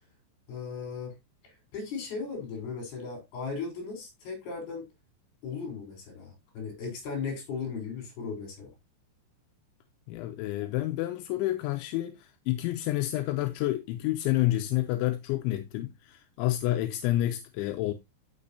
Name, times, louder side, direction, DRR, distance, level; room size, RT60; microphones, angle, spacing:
voice 1, 0.5-1.1 1.4-4.9 5.4-8.7, left 5 dB, 60° left, 5.9 m, -37 dB
voice 2, 10.1-17.9, left 15 dB, 85° left, 3.0 m, -29 dB
12.0 x 6.1 x 2.7 m
omnidirectional pair, 5.3 m